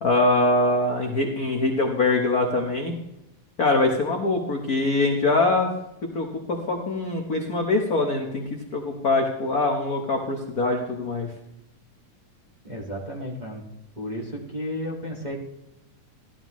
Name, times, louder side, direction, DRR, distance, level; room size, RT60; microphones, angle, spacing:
voice 1, 0.0-2.9 3.6-5.7 6.0-11.3, left 2 dB, 60° left, 2 dB, 0.9 m, -23 dB
voice 2, 12.6-13.6 14.0-15.3, equal, 20° right, -3 dB, 1.5 m, -33 dB
16.0 x 12.5 x 3.1 m, 0.87 s
omnidirectional pair, 3.5 m